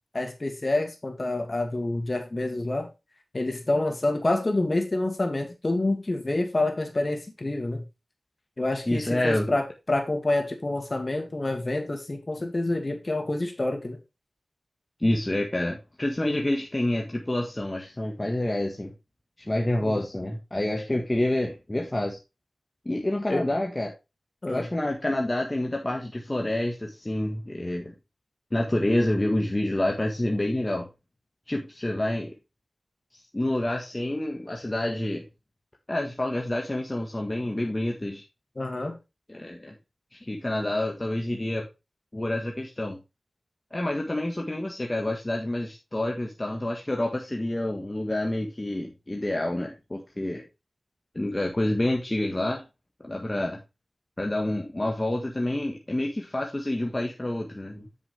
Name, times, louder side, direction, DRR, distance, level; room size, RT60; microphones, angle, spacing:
voice 1, 0.1-2.9 3.3-7.8 8.6-14.0 19.8-19.9 23.3-23.5 24.4-24.7 38.6-39.0, left 2 dB, 45° left, 4 dB, 2.5 m, -27 dB
voice 2, 8.9-9.6 15.0-18.9 19.5-22.2 22.9-23.9 24.5-28.0 28.5-30.9 31.5-32.3 33.3-35.3 35.9-38.2 39.3-39.7 40.1-41.7 42.1-43.0 43.7-50.4 51.2-52.6 53.0-53.6 54.2-57.9, left 1 dB, 25° left, 0 dB, 1.6 m, -28 dB
8.4 x 6.9 x 3.5 m, 0.25 s
wide cardioid pair, 60°, 0 cm